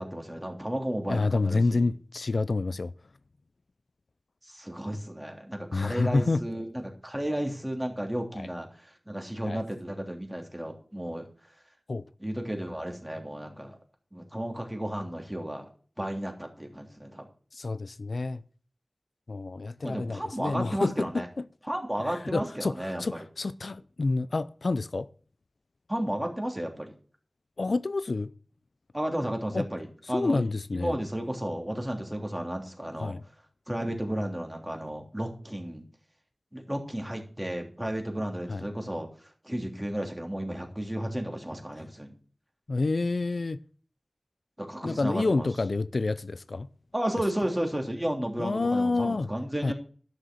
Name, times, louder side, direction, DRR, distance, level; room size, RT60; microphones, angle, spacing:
voice 1, 0.0-1.9 4.4-11.3 12.2-13.8 14.1-15.7 16.0-17.3 19.8-21.3 21.7-23.2 25.9-26.9 28.9-30.4 30.7-33.2 33.7-35.8 36.5-42.1 44.6-45.5 46.9-49.7, right 1 dB, 15° right, 3.2 m, -33 dB
voice 2, 1.1-2.9 5.7-6.4 8.3-8.5 9.5-9.6 11.9-12.1 17.5-18.4 19.3-21.4 22.1-25.1 27.6-28.3 29.5-29.6 30.1-30.9 33.0-33.2 38.5-38.6 42.7-43.6 44.8-46.7 48.4-49.3 49.6-49.7, left 3 dB, 85° left, 0.4 m, -28 dB
12.0 x 6.5 x 6.2 m
wide cardioid pair, 40°, 0 cm